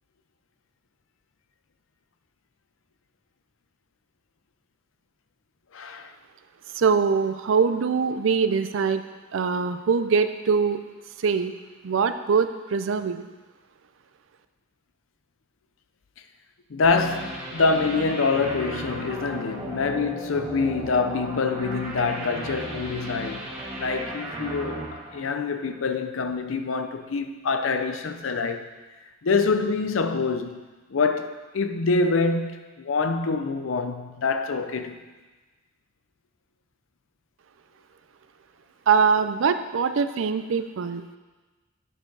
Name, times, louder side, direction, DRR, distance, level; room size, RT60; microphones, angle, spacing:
voice 1, 5.7-6.1 16.7-23.5 23.8-28.7 29.2-30.6 30.9-35.0, left 4 dB, 80° left, 0.6 m, -25 dB
voice 2, 6.7-9.0 9.3-10.8 11.2-11.5 11.8-13.3 38.9-41.2, right 5 dB, 75° right, 0.4 m, -23 dB
sound 1, 16.8-25.9, right 1 dB, 30° right, 1.7 m, -35 dB
9.9 x 4.4 x 4.7 m
head